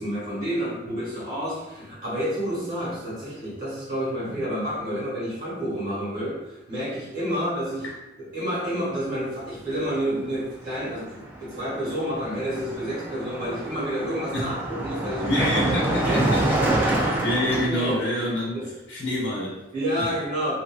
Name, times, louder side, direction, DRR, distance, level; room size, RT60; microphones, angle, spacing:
voice 1, 0.0-7.9 8.2-17.1 17.7-18.0 18.5-18.7 19.7-20.5, equal, 50° right, -8 dB, 1.5 m, -29 dB
Car passing by, 10.2-10.4 10.7-17.7, right 2 dB, 10° right, 0.3 m, -27 dB
voice 2, 15.2-16.6 16.9-18.6 18.9-19.6, left 1 dB, 75° left, -5 dB, 0.8 m, -27 dB
2.7 x 2.6 x 2.3 m, 1.0 s
head